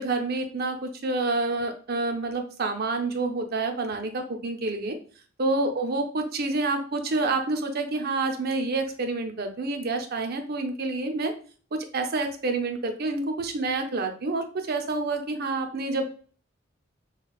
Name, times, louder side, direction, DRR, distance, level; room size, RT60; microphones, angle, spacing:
voice 1, 0.0-5.0 5.4-11.3 11.7-16.0, right 3 dB, 55° right, 5 dB, 0.6 m, -28 dB
5.7 x 2.3 x 2.3 m, 0.41 s
head